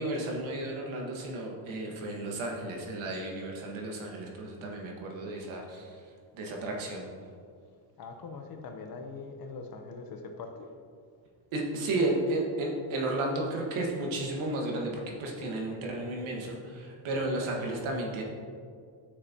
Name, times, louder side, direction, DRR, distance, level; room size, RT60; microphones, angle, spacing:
voice 1, 0.0-5.9 6.3-7.1 11.5-18.2, right 2 dB, 70° right, 0 dB, 1.7 m, -33 dB
voice 2, 8.0-10.7, left 4 dB, 45° left, 5 dB, 0.9 m, -42 dB
9.8 x 6.5 x 2.9 m, 2.1 s
cardioid pair, 120°, 49 cm